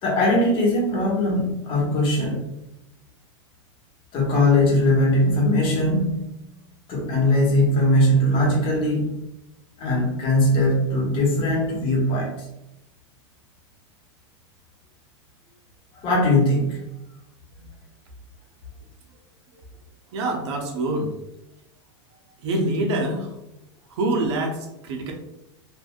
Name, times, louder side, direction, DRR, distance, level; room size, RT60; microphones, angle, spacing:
voice 1, 0.0-2.5 4.1-6.3 6.9-9.2 9.8-12.5 15.9-16.8, left 1 dB, 35° left, -3 dB, 1.1 m, -20 dB
voice 2, 20.1-21.1 22.4-23.3 23.9-25.1, right 2 dB, 70° right, 3 dB, 0.7 m, -25 dB
3.3 x 2.5 x 2.3 m, 0.86 s
supercardioid pair, 130°, 15 cm